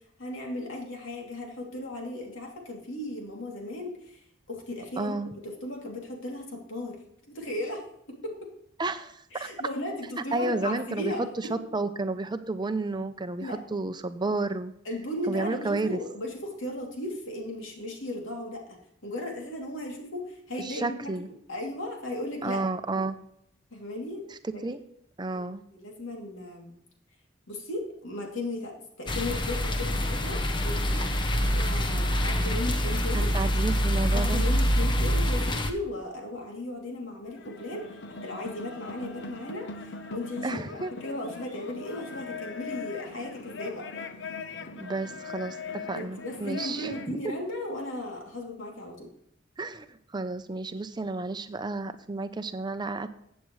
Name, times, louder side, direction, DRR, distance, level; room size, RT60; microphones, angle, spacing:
voice 1, 0.2-4.2 4.5-5.2 5.4-7.0 7.3-7.8 8.2-8.5 9.3-11.3 13.4-13.6 14.8-21.1 21.5-22.6 23.7-24.6 25.3-26.7 27.5-31.0 31.4-33.3 34.1-39.7 40.1-43.9 45.9-49.1, left 1 dB, 85° left, 0 dB, 2.8 m, -36 dB
voice 2, 5.0-5.3 8.8-9.5 10.3-14.7 15.3-16.0 20.6-21.3 22.4-23.2 24.3-24.8 25.2-25.6 33.3-34.4 40.4-40.9 44.7-45.6 45.9-47.2 49.6-53.1, right 3 dB, 20° right, 10 dB, 0.6 m, -31 dB
sound 1, 29.1-35.7, equal, 25° left, 0.8 m, -25 dB
sound 2, 37.3-47.1, left 4 dB, 65° left, 0.9 m, -40 dB
15.0 x 8.2 x 3.2 m, 0.73 s
head